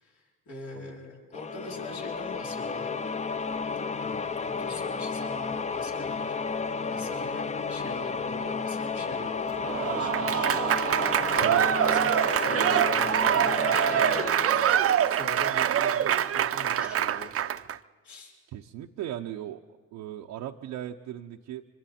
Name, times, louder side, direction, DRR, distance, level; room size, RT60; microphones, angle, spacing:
voice 1, 0.0-3.0 4.0-6.4 6.9-10.5 11.3-14.5 14.8-17.3 18.0-18.3, left 2 dB, 70° left, -2 dB, 3.7 m, -43 dB
voice 2, 0.7-1.1 11.4-11.6 18.5-19.6 19.9-21.6, right 11 dB, 90° right, 1 dB, 0.7 m, -38 dB
sound 1, 1.3-15.9, left 5 dB, 25° left, 0.6 m, -32 dB
Applause / Crowd, 9.6-17.8, right 10 dB, 50° right, 0.6 m, -25 dB
26.0 x 24.0 x 4.3 m, 1.4 s
cardioid pair, 90°, 30 cm